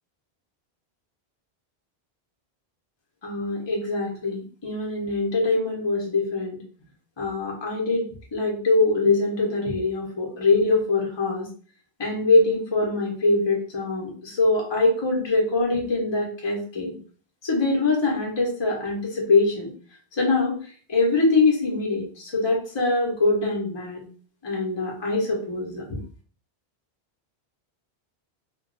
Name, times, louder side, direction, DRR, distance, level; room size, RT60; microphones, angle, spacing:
voice 1, 3.2-6.6 7.2-11.5 12.0-16.9 17.4-19.7 20.2-20.6 20.9-24.0 24.4-25.8, left 3 dB, 25° left, -1 dB, 0.8 m, -23 dB
2.5 x 2.2 x 3.8 m, 0.41 s
omnidirectional pair, 1.1 m